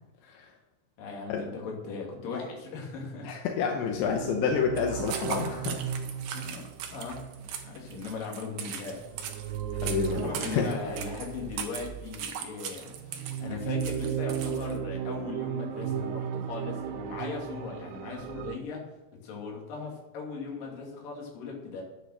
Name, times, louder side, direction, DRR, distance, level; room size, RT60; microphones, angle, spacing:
voice 1, 1.0-3.3 6.3-6.6 6.9-7.3 7.6-9.0 10.0-18.8 19.1-21.8, left 4 dB, 50° left, -1 dB, 3.7 m, -38 dB
voice 2, 3.2-5.8 6.4-6.5 9.8-10.7, left 6 dB, 80° left, 2 dB, 3.1 m, -29 dB
sound 1, 3.8-12.2 12.9-18.6, right 9 dB, 90° right, 3.4 m, -36 dB
sound 2, 4.8-14.8, right 8 dB, 75° right, 2.0 m, -39 dB
9.9 x 9.3 x 6.5 m, 1.0 s
omnidirectional pair, 5.6 m